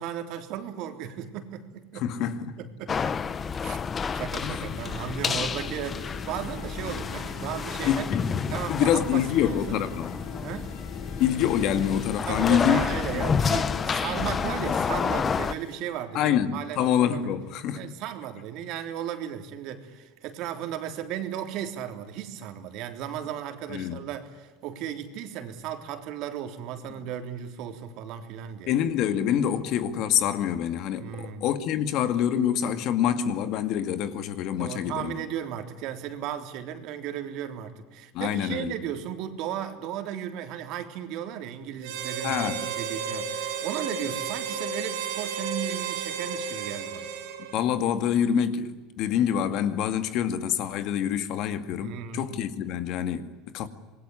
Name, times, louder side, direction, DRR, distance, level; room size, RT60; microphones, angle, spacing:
voice 1, 0.0-2.0 2.6-3.2 3.6-3.8 4.1-8.1 8.5-9.8 10.4-10.7 12.3-17.3 17.7-28.7 31.0-31.5 34.6-47.1 51.8-52.4, right 10 dB, 55° right, 3.6 m, -35 dB
voice 2, 1.9-2.6 4.4-4.8 5.4-5.5 7.9-8.3 8.7-10.1 11.2-12.8 13.1-13.3 16.1-17.9 23.7-24.1 28.7-35.2 38.1-38.7 42.2-42.6 47.5-53.7, left 9 dB, 55° left, 2.2 m, -26 dB
sound 1, 2.9-15.5, left 6 dB, 25° left, 0.9 m, -30 dB
sound 2, 4.3-15.8, left 3 dB, 85° left, 6.6 m, -45 dB
Harmonica, 41.8-47.8, right 6 dB, 85° right, 5.0 m, -33 dB
26.5 x 21.5 x 9.9 m
supercardioid pair, 135°, 0 cm